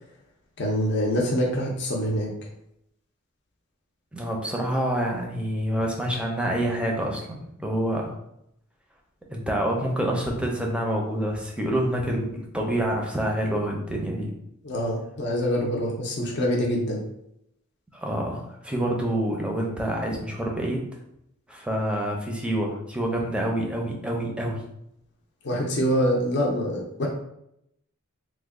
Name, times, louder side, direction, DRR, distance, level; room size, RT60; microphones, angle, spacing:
voice 1, 0.6-2.3 14.6-17.0 25.4-27.1, equal, 55° left, -1 dB, 0.6 m, -25 dB
voice 2, 4.1-8.2 9.3-14.3 17.9-20.8 21.5-24.6, right 1 dB, 5° right, 0 dB, 0.5 m, -27 dB
3.1 x 2.2 x 3.5 m, 0.77 s
head